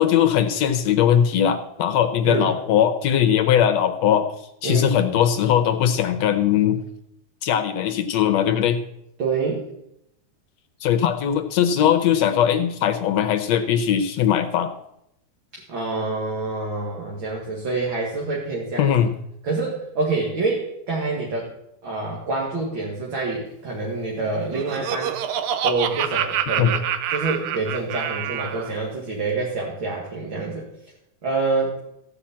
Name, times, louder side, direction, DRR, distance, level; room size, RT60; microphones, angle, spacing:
voice 1, 0.0-4.3 4.6-6.8 7.4-8.8 10.8-14.7 18.8-19.1 26.6-26.7, left 9 dB, 75° left, 8 dB, 1.7 m, -20 dB
voice 2, 9.2-9.6 15.7-18.9 19.4-21.5 21.8-25.2 25.6-26.8 27.1-30.7 31.2-31.7, right 3 dB, 40° right, -3 dB, 2.7 m, -26 dB
Laughter, 24.2-28.7, right 9 dB, 70° right, 1.6 m, -27 dB
15.0 x 5.7 x 8.6 m, 0.80 s
omnidirectional pair, 3.5 m